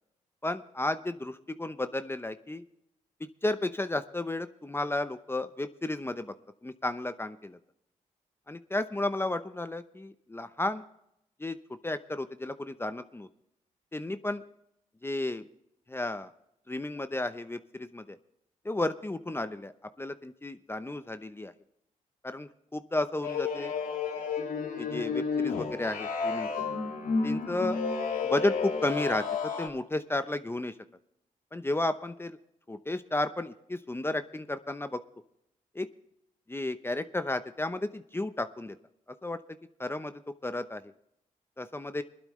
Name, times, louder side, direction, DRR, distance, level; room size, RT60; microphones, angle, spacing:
voice 1, 0.4-2.6 3.4-6.3 6.6-7.6 8.5-10.8 11.4-11.6 11.8-13.3 13.9-14.4 15.0-15.4 15.9-16.3 16.7-18.2 18.6-19.7 20.0-21.5 22.2-23.7 24.8-26.5 27.2-27.8 28.2-30.7 31.5-32.4 32.7-35.0 35.7-35.9 36.5-38.8 39.2-39.4 39.8-40.1 40.4-40.8 41.6-42.0, left 2 dB, 15° left, 10 dB, 0.8 m, -33 dB
sound 1, 23.2-29.7, left 5 dB, 90° left, 2.1 m, -31 dB
20.0 x 12.0 x 3.2 m, 0.78 s
cardioid pair, 65°, 14 cm